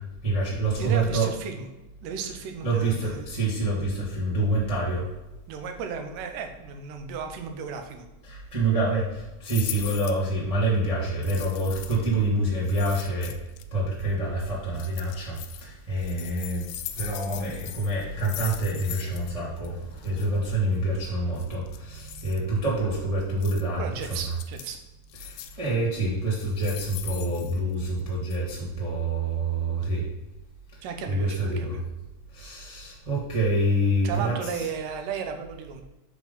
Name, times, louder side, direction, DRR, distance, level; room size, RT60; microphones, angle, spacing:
voice 1, 0.2-1.3 2.6-5.1 8.3-13.3 13.7-16.7 16.9-23.8 25.2-30.0 30.7-30.8 31.1-31.8 32.3-34.3, right 1 dB, 50° right, -6 dB, 0.4 m, -27 dB
voice 2, 0.8-1.7 2.0-3.3 5.5-8.1 23.8-24.8 30.8-31.8 34.0-35.8, right 6 dB, 80° right, 5 dB, 2.4 m, -34 dB
sound 1, 9.4-10.2 11.2-12.1 12.6-13.6 14.7-15.6 16.0-19.3 19.6-19.7 20.0-20.3 21.4-22.4 23.4-23.6 24.0-24.7 25.1-25.7 26.3-28.0 28.3-28.4, left 12 dB, 90° left, 2.2 m, -40 dB
7.6 x 3.8 x 5.4 m, 1.0 s
omnidirectional pair, 3.8 m